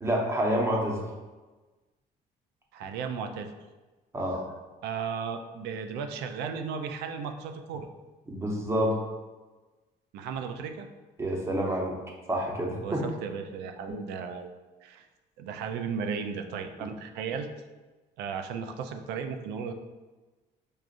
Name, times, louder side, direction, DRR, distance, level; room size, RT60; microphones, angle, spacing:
voice 1, 0.0-1.0 4.1-4.4 8.3-9.0 11.2-12.0 12.3-13.0, equal, 15° right, -1 dB, 0.8 m, -28 dB
voice 2, 2.7-3.5 4.8-7.9 10.1-10.9 12.8-14.5 14.8-15.1 15.4-17.5 18.2-19.7, right 6 dB, 85° right, 7 dB, 0.4 m, -35 dB
6.4 x 2.4 x 2.5 m, 1.2 s
cardioid pair, 110°, 17 cm